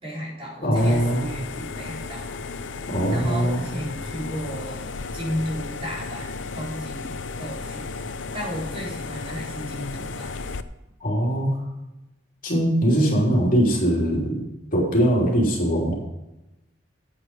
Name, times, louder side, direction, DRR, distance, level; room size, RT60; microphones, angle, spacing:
voice 1, 0.0-2.3 3.1-10.3, equal, 30° right, -4 dB, 4.2 m, -34 dB
voice 2, 0.6-1.3 2.9-3.6 11.0-11.5 12.4-14.4 14.7-15.9, equal, 45° left, -3 dB, 3.3 m, -21 dB
sound 1, 0.8-10.6, left 4 dB, 75° left, 0.6 m, -34 dB
9.7 x 8.7 x 5.1 m, 0.97 s
head